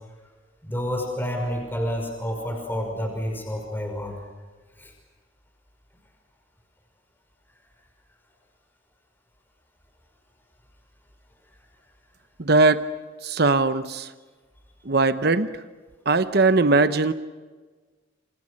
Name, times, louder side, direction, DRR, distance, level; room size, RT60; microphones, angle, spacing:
voice 1, 0.6-4.1 4.8-4.9, equal, 10° left, 1 dB, 5.7 m, -29 dB
voice 2, 12.4-12.8 13.2-14.1 14.9-15.5 16.1-17.1, right 3 dB, 50° right, 11 dB, 0.9 m, -19 dB
28.5 x 28.0 x 6.5 m, 1.3 s
head